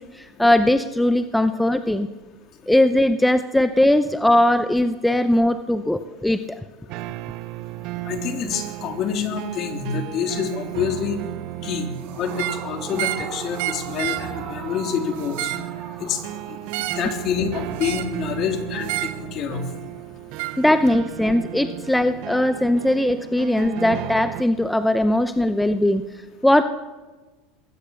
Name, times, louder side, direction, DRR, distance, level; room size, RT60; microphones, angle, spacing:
voice 1, 0.1-2.1 2.7-6.6 20.6-26.0 26.4-26.6, left 1 dB, 5° left, 10 dB, 0.7 m, -19 dB
sound 1, 6.9-24.4, right 17 dB, 55° right, 0.8 m, -35 dB
voice 2, 8.1-11.2 11.6-15.5 16.0-16.2 17.0-19.6, left 7 dB, 40° left, 5 dB, 3.1 m, -27 dB
Yell / Screaming, 12.0-16.9, right 5 dB, 40° right, 6.1 m, -39 dB
sound 2, 12.3-12.6 12.9-13.3 13.6-14.3 15.2-15.7 16.7-17.1 17.8-18.2 18.8-19.2 20.4-20.6, right 17 dB, 75° right, 1.9 m, -29 dB
21.5 x 17.0 x 7.0 m, 1.3 s
supercardioid pair, 140°, 0 cm